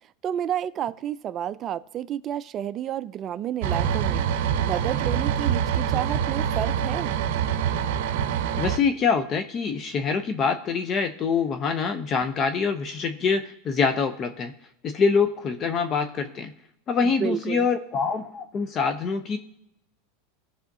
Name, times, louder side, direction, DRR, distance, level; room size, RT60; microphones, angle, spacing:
voice 1, 0.2-4.2 4.6-7.1 17.0-17.7, right 10 dB, 35° right, 15 dB, 0.3 m, -30 dB
sound 1, 3.6-8.8, right 8 dB, 65° right, 0.7 m, -25 dB
voice 2, 8.6-14.5 14.8-16.5 16.9-19.4, left 5 dB, 30° left, 9 dB, 0.6 m, -25 dB
16.5 x 5.6 x 2.7 m, 0.81 s
supercardioid pair, 130°, 0 cm